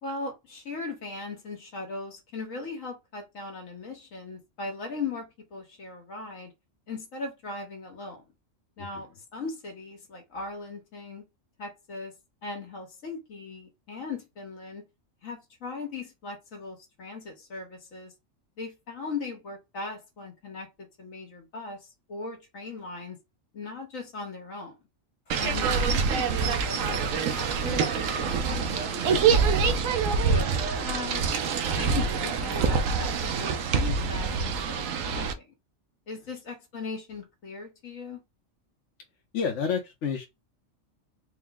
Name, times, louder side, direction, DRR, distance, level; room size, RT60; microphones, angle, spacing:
voice 1, 0.0-6.5 6.9-8.2 8.8-11.2 11.6-12.2 12.4-14.8 15.2-18.1 18.6-23.2 23.5-24.8 25.4-29.8 30.3-31.3 31.7-35.5 36.1-38.2, left 4 dB, 85° left, 1.7 m, -39 dB
voice 2, 25.3-25.7 39.3-40.3, left 6 dB, 70° left, 1.1 m, -31 dB
sound 1, 25.3-35.3, right 5 dB, 80° right, 1.0 m, -25 dB
4.5 x 2.1 x 3.5 m
omnidirectional pair, 1.4 m